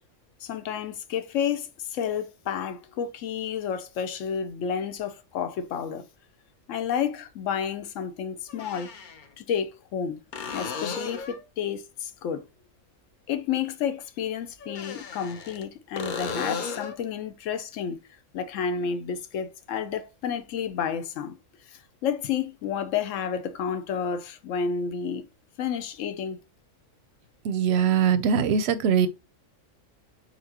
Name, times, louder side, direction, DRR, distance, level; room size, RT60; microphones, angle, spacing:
voice 1, 0.4-6.1 6.7-8.9 9.4-10.2 10.5-12.4 13.3-18.0 18.3-21.4 21.7-25.2 25.6-26.4, left 7 dB, 75° left, 1.0 m, -30 dB
sound 1, 5.0-5.1 7.1-7.2 8.5-9.3 10.3-11.5 14.6-15.6 16.0-17.0 20.7-20.8, left 5 dB, 50° left, 0.6 m, -35 dB
voice 2, 27.4-29.1, right 7 dB, 65° right, 0.8 m, -22 dB
4.3 x 3.8 x 2.8 m
omnidirectional pair, 1.4 m